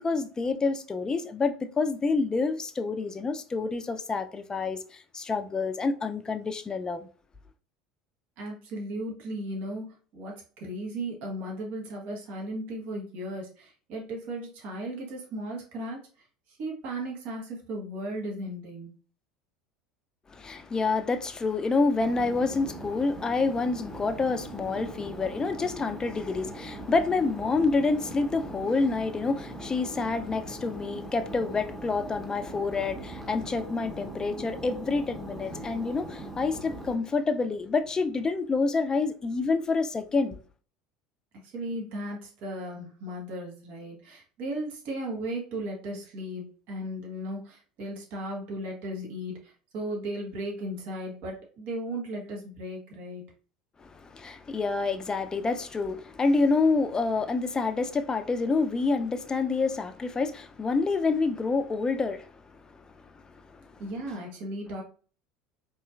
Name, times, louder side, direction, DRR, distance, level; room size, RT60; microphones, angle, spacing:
voice 1, 0.0-7.1 20.3-40.4 53.8-63.8, left 4 dB, 25° left, 0.5 m, -28 dB
voice 2, 8.4-9.8 10.1-18.9 41.4-53.2 63.8-64.8, right 1 dB, 60° right, 1.3 m, -36 dB
sound 1, 22.0-37.0, right 1 dB, ahead, 0.8 m, -41 dB
4.2 x 3.0 x 2.4 m
hypercardioid pair, 75°, 3 cm